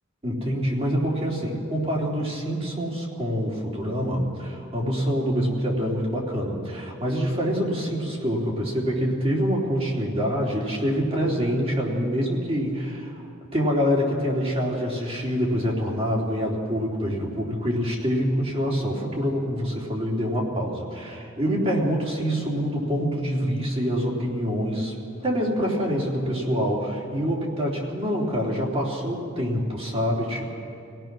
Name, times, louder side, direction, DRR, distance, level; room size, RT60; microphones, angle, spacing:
voice 1, 0.2-13.3 13.5-24.9 25.2-30.6, equal, 30° right, -3 dB, 3.3 m, -26 dB
25.5 x 17.0 x 6.1 m, 2.6 s
head